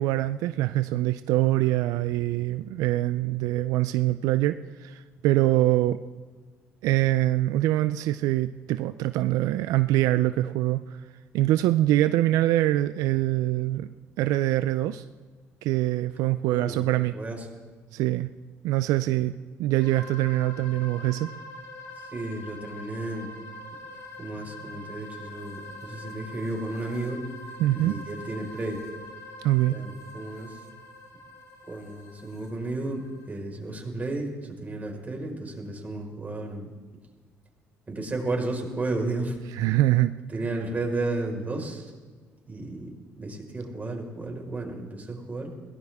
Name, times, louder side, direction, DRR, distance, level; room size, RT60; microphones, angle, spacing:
voice 1, 0.0-6.0 6.8-11.0 11.3-13.9 14.2-15.0 15.6-17.2 17.9-18.3 18.6-21.3 27.6-28.0 29.4-29.8 39.6-40.1, right 15 dB, 80° right, 12 dB, 0.4 m, -24 dB
voice 2, 16.5-16.9 17.1-17.4 21.9-23.3 24.2-27.2 27.7-28.8 29.7-30.6 31.7-36.7 37.9-39.4 40.3-41.9 42.5-42.9 43.2-45.5, right 2 dB, 25° right, 1 dB, 4.8 m, -33 dB
sound 1, 19.8-33.4, left 2 dB, 65° left, 2.9 m, -44 dB
22.0 x 17.5 x 3.6 m, 1.4 s
supercardioid pair, 65°, 6 cm